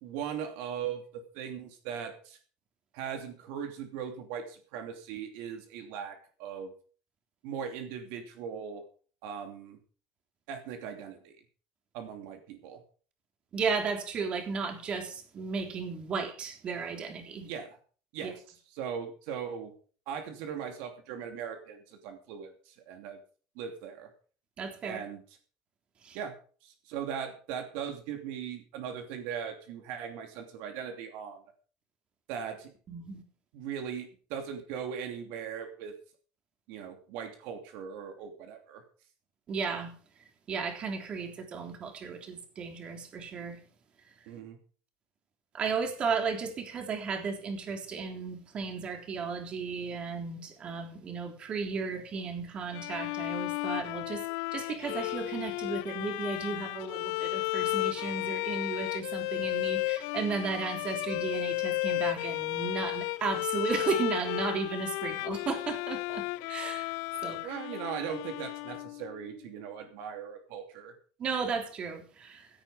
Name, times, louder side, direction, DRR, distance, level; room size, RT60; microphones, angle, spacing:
voice 1, 0.0-2.4 2.9-6.7 7.4-8.8 9.2-9.8 10.5-11.3 11.9-12.8 17.4-17.8 18.1-18.4 18.7-19.7 20.1-23.2 23.6-24.1 24.8-25.2 26.1-26.3 26.6-31.4 32.3-32.7 33.5-35.9 36.7-38.8 44.3-44.6 67.4-70.9, right 7 dB, 70° right, 5 dB, 2.9 m, -39 dB
voice 2, 13.5-17.5 18.2-18.3 24.6-25.0 26.0-26.2 32.9-33.2 39.5-39.9 40.5-43.6 45.5-54.2 54.5-67.0 67.2-67.6 71.2-72.5, right 5 dB, 35° right, 4 dB, 3.4 m, -34 dB
Bowed string instrument, 52.7-69.3, left 22 dB, 75° left, 0.5 m, -33 dB
16.0 x 9.5 x 5.1 m, 0.42 s
cardioid pair, 135°, 3 cm